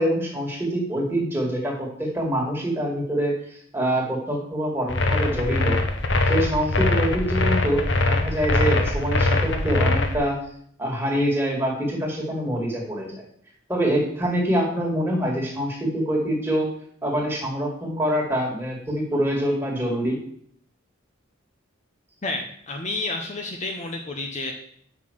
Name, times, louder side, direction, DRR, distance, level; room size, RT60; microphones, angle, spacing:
voice 1, 0.0-5.8 6.3-10.4 10.8-13.2 13.7-16.7 17.0-20.2, equal, 10° right, -2 dB, 2.0 m, -25 dB
sound 1, 4.9-10.1, left 2 dB, 60° left, 1.0 m, -21 dB
voice 2, 22.2-24.5, left 2 dB, 35° left, 3 dB, 0.7 m, -30 dB
5.9 x 5.7 x 6.3 m, 0.62 s
head